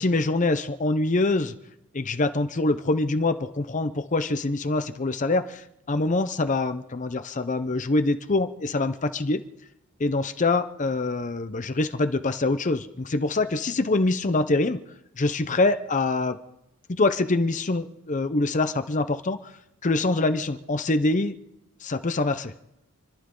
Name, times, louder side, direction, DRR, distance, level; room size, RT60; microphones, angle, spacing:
voice 1, 0.0-1.5 1.9-9.4 10.0-14.8 15.2-16.4 16.9-19.5 19.8-21.4 21.8-22.5, left 2 dB, 35° left, 10 dB, 0.6 m, -25 dB
28.5 x 12.0 x 3.8 m, 0.85 s
head